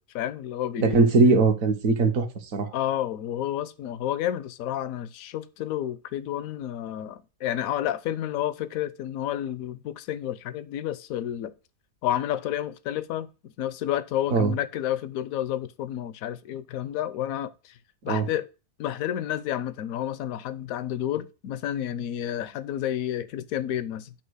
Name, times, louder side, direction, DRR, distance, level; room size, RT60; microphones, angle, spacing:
voice 1, 0.1-1.1 2.7-11.5 12.0-17.8 18.0-18.5 18.8-24.1, left 11 dB, 70° left, 1.0 m, -30 dB
voice 2, 0.8-2.3 2.5-2.7 14.3-14.5 18.1-18.3, right 3 dB, 65° right, 1.4 m, -20 dB
8.7 x 3.0 x 6.2 m
omnidirectional pair, 1.6 m